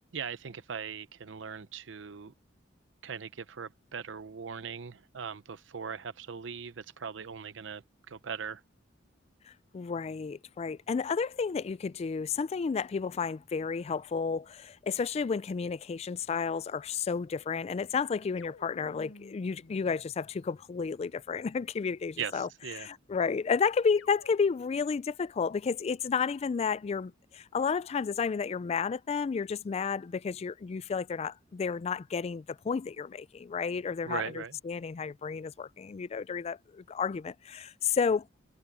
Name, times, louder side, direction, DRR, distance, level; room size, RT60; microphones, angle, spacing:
voice 1, 0.1-2.3 3.0-8.6 22.2-22.9 34.0-34.6, right 6 dB, 75° right, 0.7 m, -40 dB
voice 2, 9.7-22.5 22.8-38.3, left 5 dB, 35° left, 0.3 m, -31 dB
sound 1, 18.4-20.9 23.9-25.0, left 2 dB, 75° left, 1.0 m, -54 dB
head